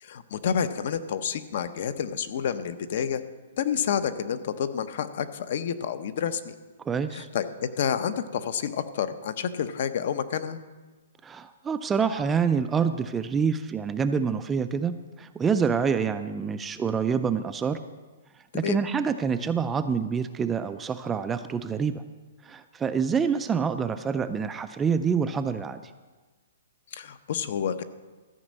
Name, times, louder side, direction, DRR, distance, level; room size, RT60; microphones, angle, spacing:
voice 1, 0.0-3.2 3.6-6.5 7.1-10.6 18.5-18.8 26.9-27.8, left 8 dB, 50° left, 12 dB, 0.7 m, -29 dB
voice 2, 6.9-7.3 11.2-17.8 18.5-22.0 22.4-25.8, right 6 dB, 10° right, 9 dB, 0.3 m, -27 dB
14.0 x 5.2 x 7.5 m, 1.3 s
hypercardioid pair, 165°, 0 cm